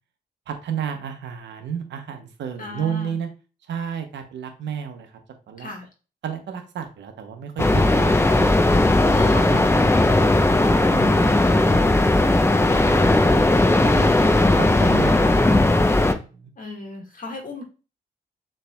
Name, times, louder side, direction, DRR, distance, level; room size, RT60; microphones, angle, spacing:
voice 1, 0.5-3.3 3.7-5.2 5.5-5.7 6.2-8.7 9.0-9.9 10.5-11.3 11.7-12.2 12.5-13.4 14.3-15.6 16.1-16.5, right 8 dB, 85° right, 6 dB, 0.9 m, -33 dB
voice 2, 2.6-3.1 5.6-5.9 9.1-10.0 12.9-13.1 13.9-15.3 16.6-17.6, left 2 dB, 50° left, 1 dB, 1.7 m, -35 dB
sound 1, 7.6-16.1, left 2 dB, 15° left, 0.6 m, -17 dB
6.8 x 3.4 x 2.2 m, 0.34 s
cardioid pair, 65°, 18 cm